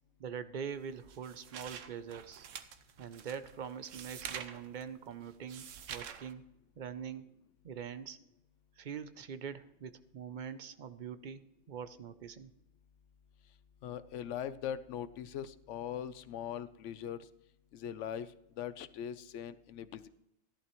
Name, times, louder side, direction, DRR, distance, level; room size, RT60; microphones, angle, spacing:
voice 1, 0.2-2.5 3.0-6.5 6.8-7.3 7.6-8.2 8.8-12.5, right 7 dB, 55° right, 12 dB, 0.5 m, -43 dB
sound 1, 0.7-6.3, right 8 dB, 80° right, 1.1 m, -47 dB
voice 2, 13.8-17.3 17.7-20.1, left 9 dB, 75° left, 15 dB, 0.9 m, -41 dB
14.0 x 11.5 x 3.0 m, 0.85 s
omnidirectional pair, 1.3 m